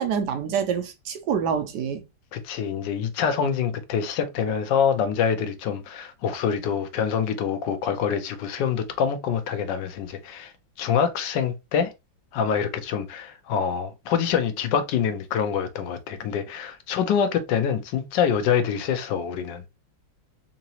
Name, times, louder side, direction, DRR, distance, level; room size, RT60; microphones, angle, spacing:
voice 1, 0.0-2.0, right 7 dB, 75° right, 1.1 m, -26 dB
voice 2, 2.3-10.5 10.8-11.9 12.3-19.6, left 7 dB, 75° left, 1.3 m, -25 dB
3.8 x 2.9 x 2.8 m
omnidirectional pair, 2.0 m